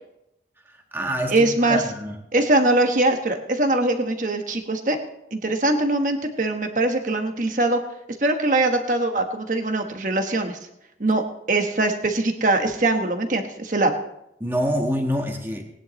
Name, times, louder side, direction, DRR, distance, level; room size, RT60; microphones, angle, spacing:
voice 1, 0.7-2.2 14.4-15.6, equal, 15° right, 2 dB, 1.5 m, -26 dB
voice 2, 1.3-1.8 2.3-5.0 5.3-7.8 8.2-10.6 11.0-11.2 11.5-13.9, right 2 dB, 45° right, 5 dB, 1.3 m, -22 dB
19.0 x 10.5 x 3.2 m, 0.82 s
head